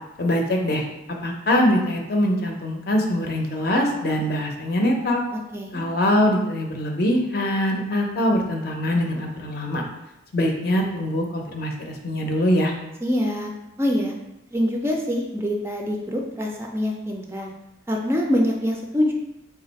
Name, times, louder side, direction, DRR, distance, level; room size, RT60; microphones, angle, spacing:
voice 1, 0.2-0.8 1.2-5.2 5.7-9.8 10.3-12.7, left 1 dB, 55° left, 1 dB, 0.6 m, -23 dB
voice 2, 13.0-13.5 13.8-14.1 14.5-17.5 17.9-19.1, left 1 dB, 15° right, 0 dB, 0.4 m, -24 dB
4.3 x 2.4 x 4.0 m, 0.91 s
head